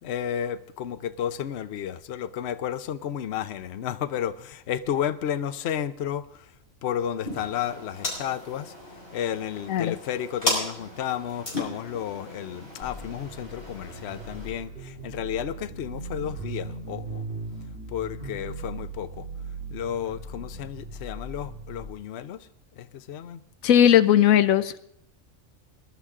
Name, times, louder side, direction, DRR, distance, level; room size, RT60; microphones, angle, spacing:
voice 1, 0.0-6.5 6.8-8.7 9.1-17.2 17.9-19.3 19.7-23.4, left 10 dB, 60° left, 0.9 m, -32 dB
sound 1, 7.2-14.5, left 2 dB, 45° left, 5.5 m, -35 dB
sound 2, 12.8-21.9, right 3 dB, 40° right, 3.4 m, -38 dB
voice 2, 23.6-24.7, left 10 dB, 85° left, 1.1 m, -18 dB
20.0 x 11.5 x 3.7 m
omnidirectional pair, 1.4 m